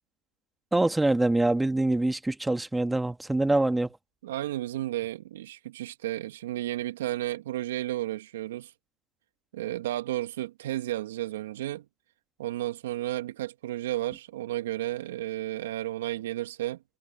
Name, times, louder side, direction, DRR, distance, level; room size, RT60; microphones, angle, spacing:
voice 1, 0.7-3.9, right 2 dB, 10° right, 2.0 m, -24 dB
voice 2, 4.2-8.7 9.5-11.8 12.4-16.8, right 14 dB, 80° right, 2.0 m, -32 dB
hypercardioid pair, 85°, 0 cm